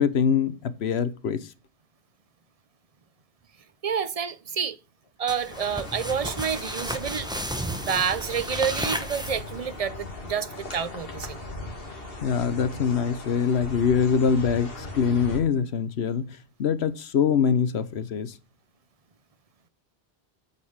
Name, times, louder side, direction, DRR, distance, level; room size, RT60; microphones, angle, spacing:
voice 1, 0.0-1.5 12.2-18.4, left 6 dB, 75° left, 1.1 m, -24 dB
voice 2, 3.8-4.8 5.2-7.3 7.7-11.4, right 7 dB, 40° right, 0.6 m, -29 dB
sound 1, 5.3-9.8, right 1 dB, 5° right, 1.0 m, -33 dB
sound 2, 5.5-15.4, left 2 dB, 60° left, 2.4 m, -38 dB
8.6 x 5.3 x 6.5 m
omnidirectional pair, 1.1 m